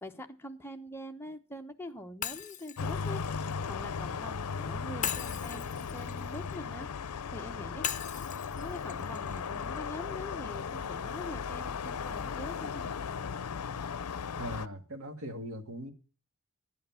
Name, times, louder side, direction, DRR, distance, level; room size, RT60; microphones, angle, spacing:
voice 1, 0.0-6.9 7.3-7.9 8.5-12.9, left 1 dB, 10° left, 1.0 m, -44 dB
Shatter, 2.2-4.3 5.0-7.1 7.8-9.9, left 9 dB, 35° left, 0.8 m, -40 dB
sound 1, 2.8-14.7, left 6 dB, 90° left, 0.6 m, -37 dB
voice 2, 14.4-15.9, equal, 65° right, 1.8 m, -40 dB
11.0 x 9.5 x 5.6 m
head